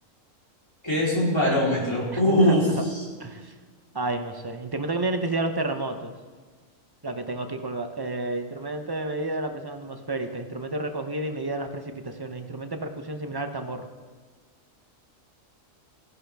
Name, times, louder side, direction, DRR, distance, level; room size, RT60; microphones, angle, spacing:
voice 1, 0.8-3.0, equal, 20° left, -7 dB, 3.6 m, -22 dB
voice 2, 3.2-3.5 3.9-6.1 7.0-13.9, right 2 dB, 30° right, 6 dB, 0.4 m, -31 dB
15.5 x 11.0 x 3.4 m, 1.4 s
omnidirectional pair, 1.4 m